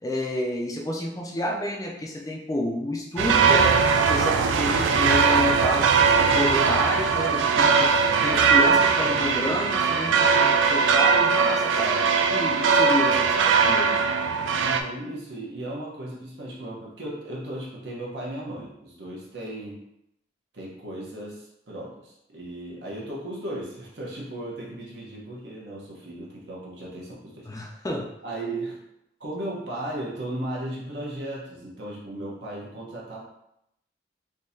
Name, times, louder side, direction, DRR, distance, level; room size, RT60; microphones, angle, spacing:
voice 1, 0.0-3.8 4.1-7.9 8.2-14.0 27.5-28.1, left 1 dB, 20° left, 0 dB, 0.3 m, -30 dB
sound 1, 3.2-14.8, right 5 dB, 90° right, 0.3 m, -20 dB
voice 2, 14.6-19.8 20.5-27.5 28.2-28.8 29.2-33.2, right 1 dB, 70° right, -4 dB, 1.0 m, -36 dB
3.7 x 2.8 x 2.7 m, 0.81 s
head